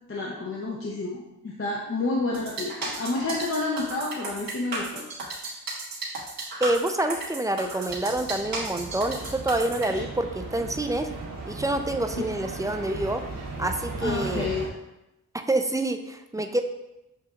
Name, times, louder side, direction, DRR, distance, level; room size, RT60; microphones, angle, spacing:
voice 1, 0.1-5.0 9.9-10.0 12.2-12.3 14.0-14.7, left 3 dB, 40° left, -3 dB, 0.7 m, -29 dB
sound 1, 2.3-9.9, right 3 dB, 85° right, 1.2 m, -34 dB
voice 2, 6.6-11.1 11.5-13.2 13.6-14.5 15.5-16.6, right 1 dB, 10° right, 6 dB, 0.3 m, -27 dB
sound 2, 7.9-14.7, right 3 dB, 65° right, 1.2 m, -37 dB
6.9 x 2.7 x 2.4 m, 0.94 s
cardioid pair, 60°, 35 cm